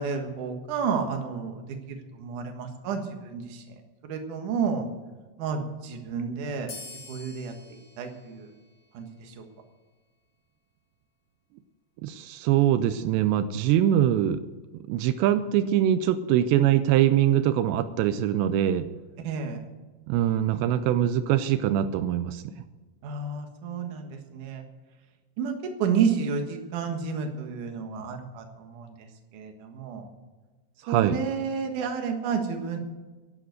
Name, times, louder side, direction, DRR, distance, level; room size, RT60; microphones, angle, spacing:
voice 1, 0.0-1.5 1.9-3.6 4.0-4.9 5.4-6.7 7.1-7.5 8.0-8.5 8.9-9.4 19.2-19.6 23.0-24.6 25.4-25.5 25.8-29.1 29.3-30.1 30.9-32.8, right 6 dB, 55° right, 4 dB, 2.6 m, -30 dB
sound 1, 6.7-9.7, left 3 dB, 45° left, 4.0 m, -47 dB
voice 2, 12.0-14.4 14.9-18.9 20.1-22.5 30.8-31.2, right 11 dB, 85° right, 11 dB, 2.8 m, -23 dB
11.5 x 11.0 x 7.9 m, 1.3 s
omnidirectional pair, 4.9 m